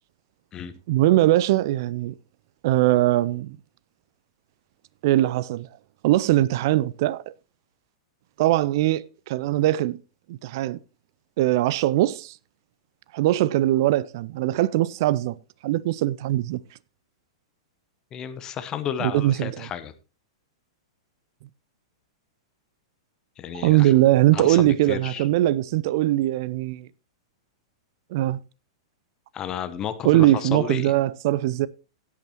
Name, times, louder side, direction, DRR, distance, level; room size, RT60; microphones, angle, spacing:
voice 1, 0.9-2.1 2.6-3.6 5.0-5.7 6.0-7.3 8.4-10.0 10.3-10.8 11.4-12.4 13.1-15.4 15.6-16.6 19.0-19.7 23.5-26.9 28.1-28.4 30.0-31.7, right 15 dB, 50° right, 0.4 m, -21 dB
voice 2, 18.1-19.9 23.4-23.9 24.3-25.3 29.3-30.9, left 8 dB, 25° left, 0.9 m, -32 dB
16.5 x 8.3 x 3.0 m
figure-of-eight pair, 100°, 3 cm